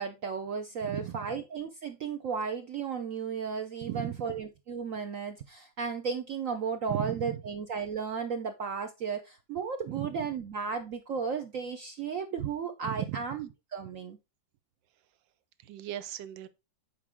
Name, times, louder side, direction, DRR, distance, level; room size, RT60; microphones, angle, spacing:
voice 1, 0.0-14.2, right 6 dB, 65° right, 0.8 m, -34 dB
voice 2, 0.8-1.2 3.8-4.2 6.9-7.4 9.9-10.1 12.8-13.2 15.6-16.5, right 12 dB, 80° right, 1.4 m, -36 dB
7.5 x 4.6 x 3.5 m
omnidirectional pair, 2.0 m